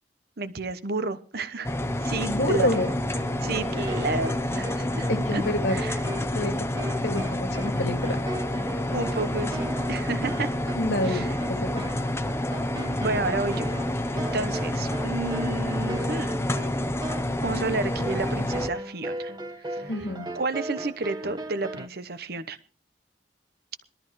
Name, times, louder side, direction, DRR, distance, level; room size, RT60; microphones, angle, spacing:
voice 1, 0.4-2.7 3.4-5.4 5.7-6.0 8.9-10.5 11.0-11.3 13.0-13.7 14.1-16.4 17.4-19.3 19.7-19.9 20.3-22.6, right 3 dB, 60° right, 12 dB, 1.0 m, -31 dB
sound 1, 1.6-18.7, left 1 dB, 15° left, 0.7 m, -28 dB
voice 2, 2.3-2.9 5.1-5.8 6.3-6.6 7.0-8.2 10.8-11.8 19.9-20.3, left 1 dB, 70° left, 6 dB, 2.1 m, -28 dB
sound 2, 2.7-21.9, right 1 dB, 25° right, 1.0 m, -38 dB
21.5 x 13.0 x 3.2 m, 0.39 s
head